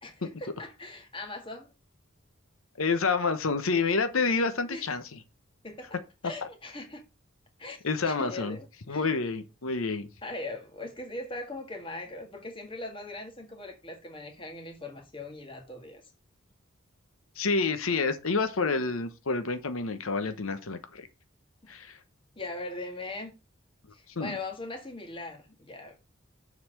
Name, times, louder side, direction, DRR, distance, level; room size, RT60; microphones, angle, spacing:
voice 1, 0.0-1.7 4.7-4.8 5.6-6.0 6.2-7.0 7.6-7.8 8.0-9.1 10.2-16.0 21.6-21.7 22.4-23.3 23.9-26.0, left 2 dB, 25° left, 1.8 m, -40 dB
voice 2, 2.8-5.2 7.8-8.6 8.9-10.1 17.4-21.1 21.7-22.0 24.2-24.4, left 4 dB, 85° left, 1.0 m, -28 dB
7.2 x 4.2 x 6.5 m
head